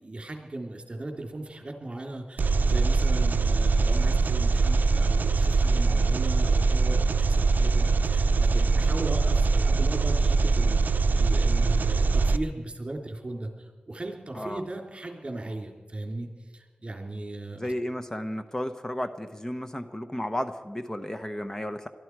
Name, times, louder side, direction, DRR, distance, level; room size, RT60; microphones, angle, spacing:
voice 1, 0.0-17.7, right 2 dB, 35° right, 3 dB, 3.4 m, -37 dB
Engine, 2.4-12.4, right 4 dB, 70° right, 0.6 m, -22 dB
voice 2, 14.3-14.6 17.6-21.9, left 1 dB, 20° left, 9 dB, 0.9 m, -33 dB
22.5 x 13.5 x 4.7 m, 1.4 s
wide cardioid pair, 65°, 3 cm